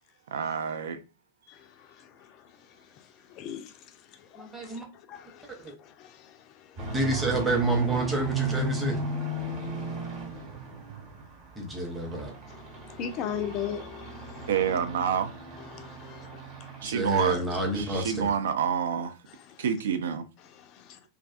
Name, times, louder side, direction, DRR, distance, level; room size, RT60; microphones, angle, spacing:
voice 1, 0.3-1.0 14.5-15.3 16.8-19.2 19.6-20.2, right 7 dB, 60° right, 0.3 m, -28 dB
voice 2, 1.5-2.4 3.3-3.7 4.2-4.8 5.1-6.9 12.5-14.5 15.7-16.4 17.2-17.3 19.5-19.6, left 8 dB, 40° left, 0.3 m, -39 dB
voice 3, 4.3-4.8 5.6-5.7 6.9-9.0 11.6-12.3 16.8-18.3, right 2 dB, 10° right, 0.8 m, -29 dB
sound 1, 6.8-11.3 11.7-16.9 17.2-17.5 17.9-18.0 18.3-18.4, right 3 dB, 40° right, 1.0 m, -34 dB
2.3 x 2.3 x 2.3 m
figure-of-eight pair, 90°, 0 cm